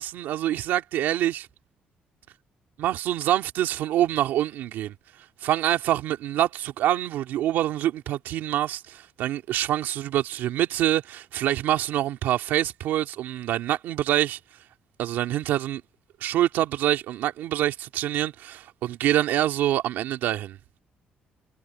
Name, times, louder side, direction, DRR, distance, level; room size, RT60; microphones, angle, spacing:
voice 1, 0.0-1.5 2.8-4.9 5.4-14.4 15.0-15.8 16.2-20.6, right 13 dB, 85° right, 2.2 m, -25 dB
cardioid pair, 160°, 3 cm